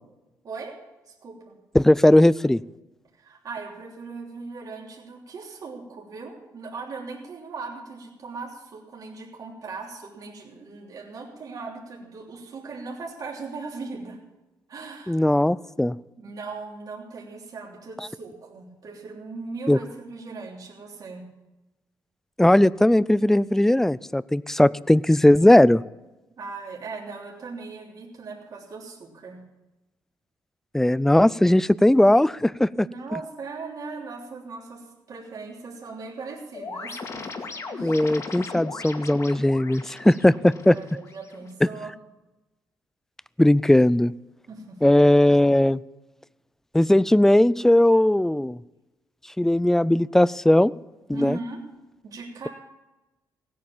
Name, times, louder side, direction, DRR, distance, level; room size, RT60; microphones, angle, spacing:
voice 1, 0.4-0.8 1.0-1.6 3.1-14.2 14.7-15.3 16.2-21.2 26.4-29.4 32.7-37.3 37.7-38.0 40.7-41.9 44.5-44.8 51.1-51.6 52.0-52.5, right 4 dB, 60° right, -2 dB, 3.2 m, -38 dB
voice 2, 1.7-2.6 15.1-15.9 19.7-19.8 22.4-25.8 30.7-32.9 37.8-40.7 43.4-44.1 44.8-45.8 46.7-48.6 49.4-50.7 51.1-51.4, left 1 dB, 5° left, 19 dB, 0.4 m, -18 dB
sound 1, 36.5-41.5, left 4 dB, 45° left, 2.1 m, -38 dB
16.5 x 9.4 x 7.3 m, 1.1 s
cardioid pair, 90°, 7 cm